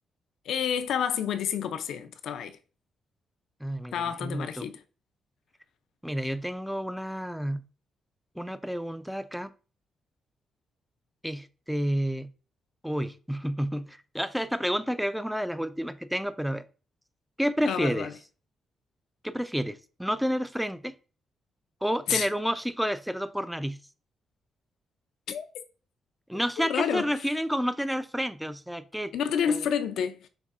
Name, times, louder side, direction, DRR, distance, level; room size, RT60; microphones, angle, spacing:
voice 1, 0.5-2.6 3.9-4.8 17.7-18.1 22.1-22.3 25.3-25.5 26.6-27.1 29.1-30.3, left 8 dB, 80° left, 0.5 m, -29 dB
voice 2, 3.6-4.7 6.0-7.6 8.4-9.5 11.2-12.3 12.8-16.6 17.4-18.1 19.2-21.0 21.8-23.8 26.3-29.1 29.5-29.6, equal, ahead, 0.4 m, -30 dB
6.5 x 2.6 x 2.4 m
cardioid pair, 95°, 0 cm